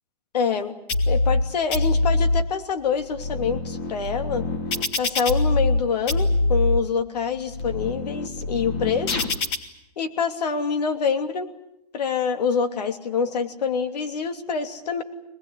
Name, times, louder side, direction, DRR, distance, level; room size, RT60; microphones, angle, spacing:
voice 1, 0.3-0.7 1.1-4.5 5.0-9.3 10.0-11.5 11.9-15.0, left 6 dB, 80° left, 8 dB, 3.0 m, -26 dB
sound 1, 0.9-1.4 1.7-2.4 3.0-5.8 6.1-6.8 7.4-9.6, left 2 dB, 40° left, 2.8 m, -24 dB
25.0 x 20.0 x 10.0 m, 0.84 s
hypercardioid pair, 160°, 21 cm